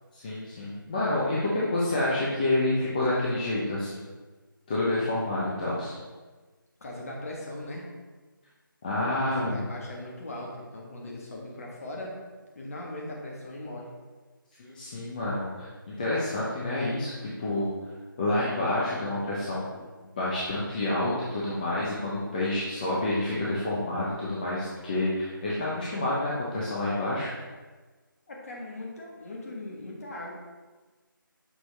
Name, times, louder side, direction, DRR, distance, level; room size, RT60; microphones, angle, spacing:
voice 1, 0.2-4.0 4.7-5.9 8.8-9.6 14.6-17.7 18.2-19.7 20.2-27.3, left 1 dB, 20° left, -7 dB, 0.7 m, -28 dB
voice 2, 6.8-7.8 9.1-12.1 12.5-13.9 19.7-19.9 28.3-30.3, left 1 dB, 40° left, -2 dB, 1.4 m, -39 dB
6.4 x 4.5 x 3.3 m, 1.3 s
figure-of-eight pair, 165°, 12 cm